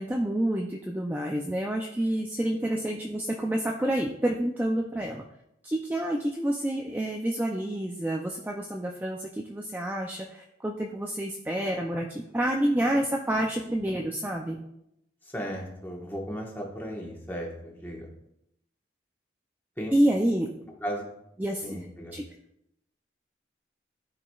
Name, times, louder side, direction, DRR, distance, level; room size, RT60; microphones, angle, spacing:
voice 1, 0.0-5.2 5.6-14.6 19.9-20.5 21.4-21.9 22.1-22.2, right 1 dB, 10° right, 1 dB, 0.4 m, -28 dB
voice 2, 15.2-18.1 19.8-19.9 20.8-21.0 21.6-22.1, equal, 10° left, -1 dB, 1.2 m, -35 dB
12.0 x 4.8 x 2.3 m, 0.81 s
head